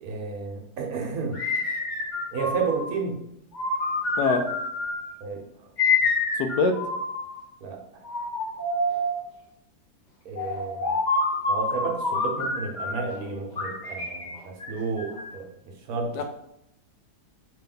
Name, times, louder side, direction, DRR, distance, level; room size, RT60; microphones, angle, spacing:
voice 1, 0.0-1.4 2.3-3.2 5.2-5.4 7.6-7.8 10.2-11.0 11.5-16.2, right 4 dB, 65° right, 2 dB, 1.3 m, -31 dB
sound 1, 1.3-2.9 3.5-5.1 5.8-7.4 8.0-9.2 10.4-13.1 13.6-15.3, left 3 dB, 30° left, 0.9 m, -27 dB
voice 2, 6.4-6.8 16.1-16.2, left 4 dB, 75° left, 5 dB, 1.1 m, -23 dB
5.1 x 2.7 x 3.8 m, 0.79 s
omnidirectional pair, 1.8 m